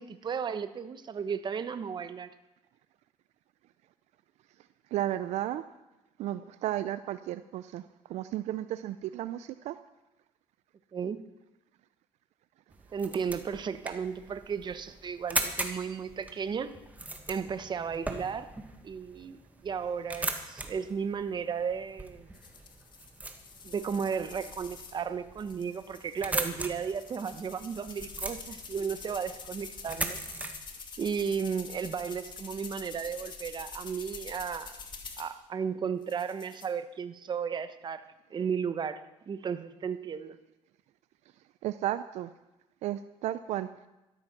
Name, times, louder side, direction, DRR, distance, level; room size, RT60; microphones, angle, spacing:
voice 1, 0.0-2.3 10.9-11.3 12.9-16.7 17.3-18.5 18.8-22.3 23.6-30.2 31.0-34.8 35.2-38.0 38.3-39.0 39.3-40.4, right 6 dB, 40° right, 11 dB, 1.1 m, -34 dB
voice 2, 4.9-5.6 6.2-9.8 41.6-42.3 42.8-43.7, right 13 dB, 70° right, 13 dB, 0.5 m, -33 dB
sound 1, 12.7-30.5, right 2 dB, 15° right, 1.8 m, -40 dB
sound 2, 22.3-25.0 25.4-35.3 36.0-36.7, left 5 dB, 40° left, 2.3 m, -46 dB
13.0 x 13.0 x 6.0 m, 0.99 s
cardioid pair, 105°, 12 cm